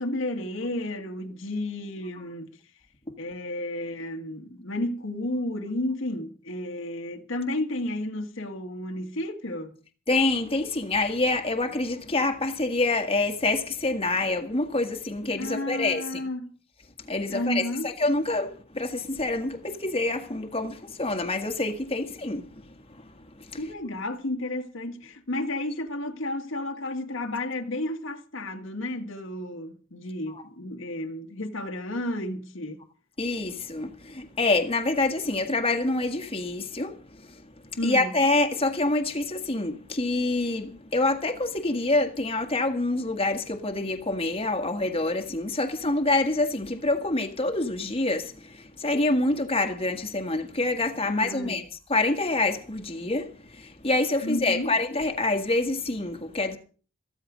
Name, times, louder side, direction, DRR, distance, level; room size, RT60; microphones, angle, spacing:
voice 1, 0.0-2.5 3.2-9.8 15.4-16.5 17.3-17.9 23.6-32.8 37.8-38.1 51.1-51.7 54.2-54.7, left 1 dB, 75° left, 1.8 m, -32 dB
voice 2, 10.1-16.2 17.1-22.6 23.4-23.5 33.2-37.4 37.8-51.6 51.9-56.6, left 2 dB, 30° left, 1.7 m, -26 dB
14.5 x 14.0 x 5.1 m
head